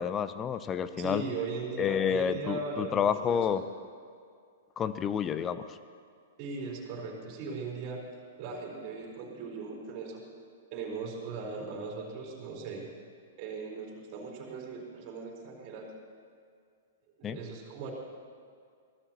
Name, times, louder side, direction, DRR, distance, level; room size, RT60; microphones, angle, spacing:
voice 1, 0.0-1.2 1.8-3.6 4.8-5.8 17.2-17.4, left 8 dB, 20° left, 13 dB, 0.7 m, -29 dB
voice 2, 1.0-3.4 6.4-8.1 8.4-10.2 10.7-12.9 13.4-15.9 17.2-17.9, right 4 dB, 40° right, -2 dB, 4.5 m, -38 dB
24.0 x 19.0 x 3.1 m, 2.2 s
figure-of-eight pair, 105°, 0 cm